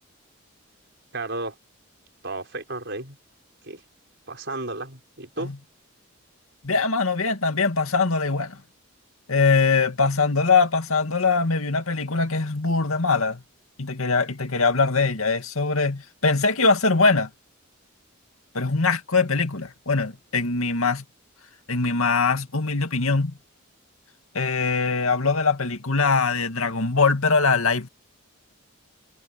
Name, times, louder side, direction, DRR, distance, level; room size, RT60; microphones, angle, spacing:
voice 1, 1.1-1.6 2.2-3.2 3.6-3.8 4.3-5.5, right 2 dB, 55° right, 5.4 m, -33 dB
voice 2, 6.6-8.6 9.3-13.4 13.8-17.3 18.5-21.0 21.7-23.3 24.3-27.9, left 4 dB, 85° left, 2.3 m, -22 dB
head